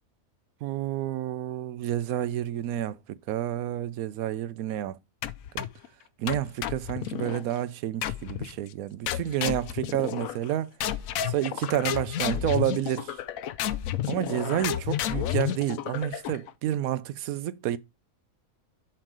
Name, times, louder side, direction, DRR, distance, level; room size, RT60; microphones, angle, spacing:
voice 1, 0.6-5.0 5.5-5.7 6.2-10.7 11.3-13.2 14.1-17.8, right 12 dB, 80° right, 1.0 m, -30 dB
sound 1, 5.2-5.9 6.3-7.4 8.0-8.6 9.1-10.5 10.8-16.5, left 11 dB, 75° left, 1.0 m, -31 dB
7.4 x 4.6 x 4.8 m
omnidirectional pair, 1.5 m